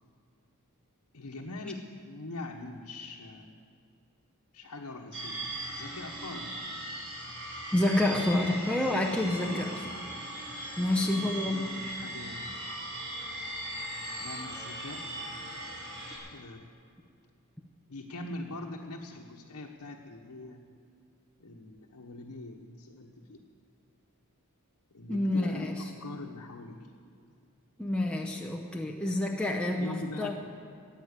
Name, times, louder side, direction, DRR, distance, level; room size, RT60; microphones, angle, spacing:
voice 1, 1.1-3.6 4.5-5.4 5.7-6.6 9.4-9.7 10.9-12.5 14.2-15.0 16.3-16.7 17.9-20.6 21.4-23.4 24.9-26.8 29.8-30.3, left 2 dB, 85° left, -2 dB, 1.1 m, -42 dB
sound 1, 5.1-16.2, right 1 dB, 60° right, 4.6 m, -39 dB
voice 2, 7.7-9.7 10.8-11.7 25.1-25.8 27.8-30.4, left 1 dB, 5° left, 0 dB, 0.7 m, -28 dB
14.5 x 9.0 x 8.0 m, 2.4 s
head